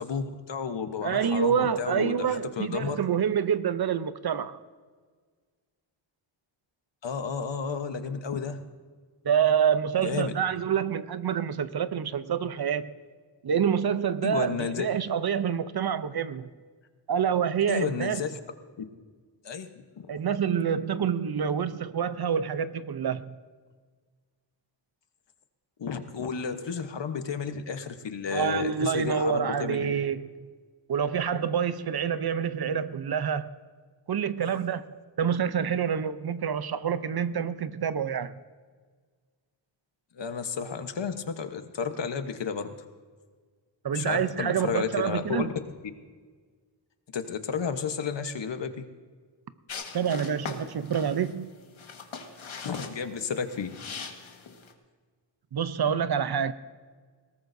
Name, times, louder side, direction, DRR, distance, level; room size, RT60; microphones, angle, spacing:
voice 1, 0.0-3.0 7.0-8.6 10.0-10.3 14.2-14.9 17.7-18.3 18.8-18.9 19.4-19.7 20.0-20.1 25.8-29.9 40.2-42.7 43.9-45.5 47.1-48.8 52.6-53.8, left 6 dB, 65° left, 1.1 m, -32 dB
voice 2, 1.0-4.6 9.2-12.9 13.4-16.5 17.1-18.2 20.1-23.3 28.3-30.5 30.9-33.5 34.1-38.4 43.8-45.5 49.9-51.5 55.5-56.5, right 7 dB, 55° right, 0.6 m, -27 dB
sound 1, 49.7-54.7, left 5 dB, 85° left, 1.7 m, -41 dB
20.5 x 18.5 x 2.7 m
wide cardioid pair, 140°, 46 cm